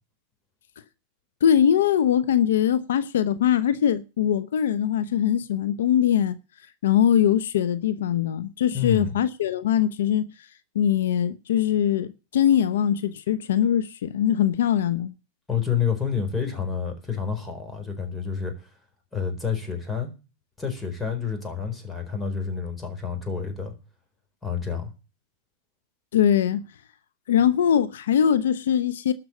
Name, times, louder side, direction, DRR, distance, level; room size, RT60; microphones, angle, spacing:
voice 1, 1.4-6.4 6.8-10.3 10.7-15.1 26.1-26.6 27.3-29.1, left 9 dB, 85° left, 0.7 m, -22 dB
voice 2, 8.7-9.1 15.5-18.7 19.1-20.1 20.6-23.7 24.4-24.9, left 7 dB, 10° left, 4.3 m, -29 dB
12.5 x 6.2 x 8.3 m
hypercardioid pair, 120°, 0 cm